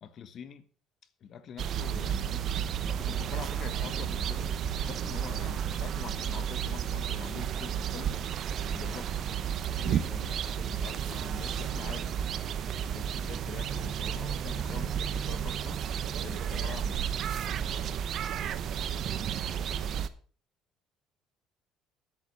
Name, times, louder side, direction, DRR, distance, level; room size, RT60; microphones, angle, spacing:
voice 1, 0.0-0.7 1.2-2.5 2.9-8.2 8.6-9.2 9.8-12.3 12.9-15.8 16.2-17.0, left 7 dB, 45° left, 1.2 m, -45 dB
sound 1, 1.6-20.1, right 9 dB, 50° right, 0.9 m, -32 dB
voice 2, 15.7-17.1 17.3-20.0, right 8 dB, 70° right, 3.5 m, -50 dB
10.0 x 8.5 x 6.1 m
cardioid pair, 120°, 0 cm